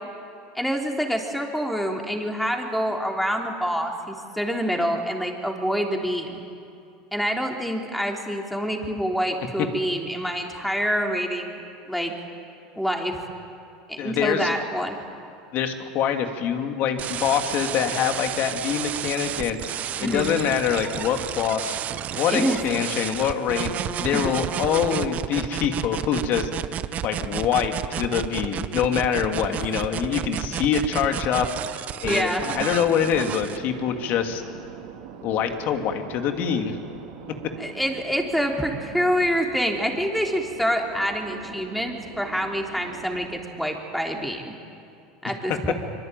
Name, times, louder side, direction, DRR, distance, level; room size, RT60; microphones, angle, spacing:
voice 1, 0.5-6.4 7.1-11.6 11.9-12.1 12.8-13.2 13.9-15.0 20.0-20.3 22.3-22.6 24.1-24.2 29.5-29.6 32.0-32.4 37.6-44.5 45.2-45.7, equal, ahead, 1 dB, 3.6 m, -26 dB
voice 2, 14.0-14.5 15.5-19.6 20.0-21.8 22.1-26.5 27.0-31.5 32.0-34.4 35.2-36.8 37.3-37.4 45.5-45.6, left 8 dB, 55° left, 5 dB, 2.7 m, -25 dB
sound 1, 17.0-33.6, right 10 dB, 40° right, 0.9 m, -31 dB
sound 2, 32.4-43.5, right 7 dB, 75° right, 3.8 m, -42 dB
24.5 x 23.5 x 9.2 m, 2.6 s
supercardioid pair, 115°, 4 cm